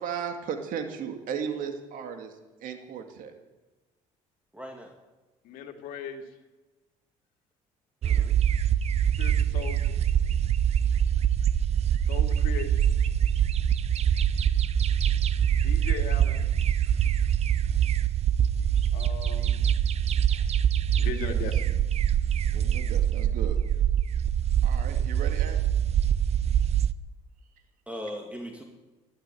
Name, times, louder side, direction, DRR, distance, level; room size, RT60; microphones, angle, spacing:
voice 1, 0.0-2.3 2.6-3.3 21.3-21.4 22.5-23.6 24.6-25.6, right 7 dB, 70° right, 5 dB, 2.3 m, -35 dB
voice 2, 4.5-4.9 8.0-8.4 11.0-11.1 27.9-28.6, equal, 10° right, 3 dB, 2.3 m, -39 dB
voice 3, 5.4-6.2 9.2-9.9 12.0-12.9 15.6-16.4 18.9-19.7 20.3-20.5 21.0-21.7, left 7 dB, 80° left, 5 dB, 2.2 m, -38 dB
sound 1, 8.0-26.9, right 9 dB, 45° right, 0.7 m, -24 dB
13.0 x 11.5 x 9.1 m, 1.2 s
cardioid pair, 95°, 14 cm